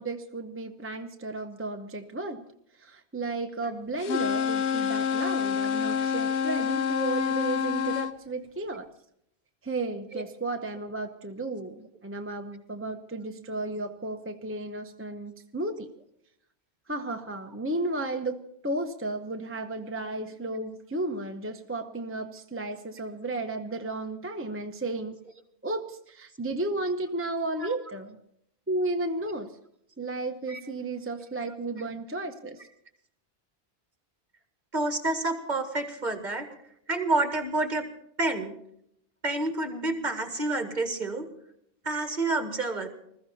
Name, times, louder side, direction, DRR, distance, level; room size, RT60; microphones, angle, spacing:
voice 1, 0.0-2.4 2.8-8.9 9.6-15.9 16.9-25.2 25.6-28.2 28.7-29.5 30.0-32.6, right 2 dB, 15° right, 5 dB, 0.8 m, -33 dB
sound 1, 4.0-8.1, left 7 dB, 90° left, 1.1 m, -27 dB
voice 2, 34.7-36.5 36.9-37.8 38.2-38.5 39.2-41.3 41.8-42.9, right 2 dB, 45° right, 7 dB, 2.1 m, -28 dB
21.0 x 14.5 x 4.2 m, 0.72 s
omnidirectional pair, 1.1 m